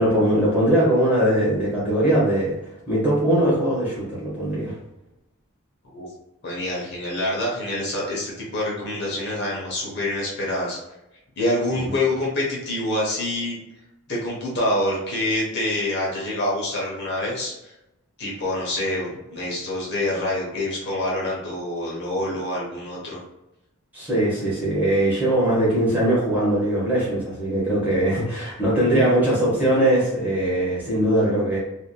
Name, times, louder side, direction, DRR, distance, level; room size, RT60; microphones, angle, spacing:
voice 1, 0.0-2.5 2.9-4.7 11.8-11.9 23.9-31.6, right 1 dB, 10° right, -8 dB, 1.3 m, -21 dB
voice 2, 6.4-10.8 11.4-13.6 14.1-17.7 18.2-23.2, left 1 dB, 50° left, -4 dB, 0.9 m, -26 dB
3.3 x 2.7 x 2.2 m, 0.92 s
head